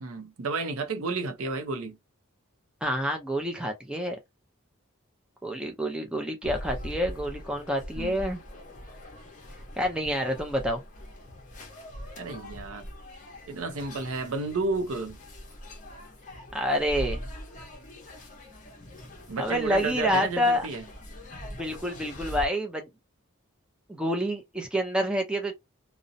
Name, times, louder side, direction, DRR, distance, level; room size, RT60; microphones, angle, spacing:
voice 1, 0.0-2.0 8.0-8.2 12.2-12.9 13.5-15.2 19.3-20.8, right 3 dB, 75° right, 0.5 m, -32 dB
voice 2, 2.8-4.2 5.4-8.4 9.8-10.8 16.5-17.3 19.4-20.7 21.5-22.9 23.9-25.5, equal, 5° right, 0.4 m, -28 dB
sound 1, 6.4-22.5, equal, 35° left, 0.7 m, -42 dB
2.6 x 2.0 x 2.5 m
head